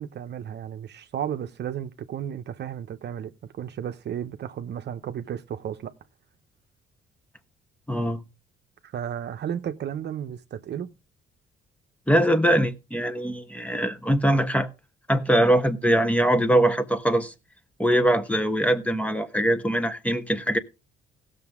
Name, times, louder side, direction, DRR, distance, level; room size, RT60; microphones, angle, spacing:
voice 1, 0.0-5.9 8.8-10.9, right 9 dB, 60° right, 0.8 m, -33 dB
voice 2, 7.9-8.2 12.1-14.7 15.1-17.3 17.8-20.6, right 1 dB, 5° left, 1.2 m, -22 dB
17.0 x 6.8 x 3.6 m
cardioid pair, 90°, 20 cm